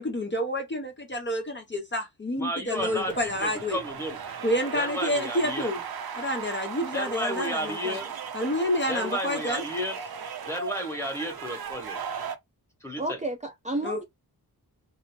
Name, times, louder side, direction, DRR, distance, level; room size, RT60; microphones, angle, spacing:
voice 1, 0.0-3.8 4.4-5.8 6.1-8.0 8.3-9.6 13.8-14.0, left 1 dB, 30° left, 0.8 m, -29 dB
voice 2, 2.3-4.2 4.7-5.7 6.9-8.1 8.9-10.0 10.4-12.0 12.8-13.2, equal, 5° left, 1.3 m, -32 dB
sound 1, 2.8-12.4, right 7 dB, 70° right, 0.7 m, -37 dB
voice 3, 13.0-14.0, right 1 dB, 20° right, 0.6 m, -31 dB
2.8 x 2.0 x 3.0 m
cardioid pair, 65°, 38 cm